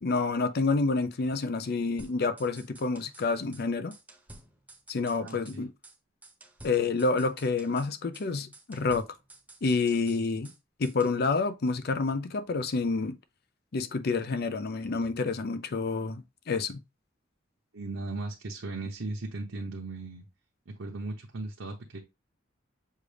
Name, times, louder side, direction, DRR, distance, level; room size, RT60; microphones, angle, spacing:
voice 1, 0.0-3.9 4.9-5.7 6.6-9.0 9.6-10.5 10.8-13.2 13.7-16.8, left 4 dB, 50° left, 0.5 m, -28 dB
sound 1, 2.0-3.3 3.5-3.6 3.9-5.6 5.8-6.0 6.2-8.3 8.5-10.6 10.8-11.2, right 2 dB, 10° right, 0.9 m, -52 dB
voice 2, 5.2-5.7 17.7-20.3 20.7-22.0, right 2 dB, 75° right, 0.8 m, -37 dB
6.5 x 2.5 x 3.3 m
head